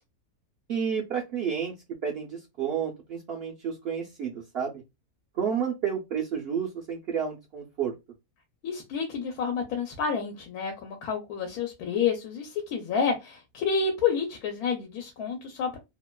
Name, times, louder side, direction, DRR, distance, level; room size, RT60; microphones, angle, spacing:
voice 1, 0.7-1.7 2.0-4.8 5.4-7.9, right 7 dB, 65° right, -1 dB, 0.6 m, -30 dB
voice 2, 8.6-15.8, left 6 dB, 85° left, 3 dB, 1.1 m, -29 dB
2.7 x 2.1 x 2.2 m, 0.23 s
omnidirectional pair, 1.6 m